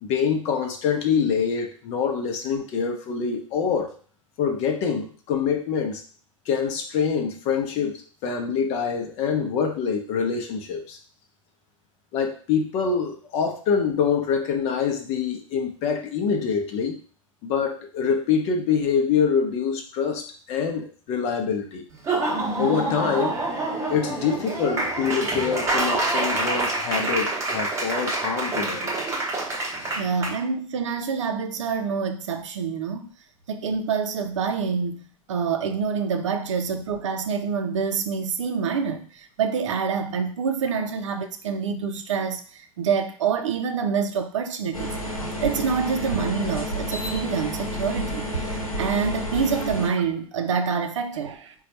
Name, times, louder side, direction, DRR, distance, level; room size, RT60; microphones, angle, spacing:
voice 1, 0.0-3.9 4.4-6.0 6.5-11.0 12.1-17.0 17.4-21.8 22.6-23.4 23.9-28.9 29.8-30.0, left 6 dB, 35° left, 0.8 m, -25 dB
Laughter / Applause, 21.9-30.4, right 2 dB, 15° right, 1.0 m, -26 dB
voice 2, 30.0-33.1 33.5-44.9 45.4-51.5, right 6 dB, 60° right, 0.6 m, -27 dB
sound 1, 44.7-49.9, right 1 dB, 85° left, 0.9 m, -30 dB
4.2 x 2.3 x 4.0 m
figure-of-eight pair, 90°, 18 cm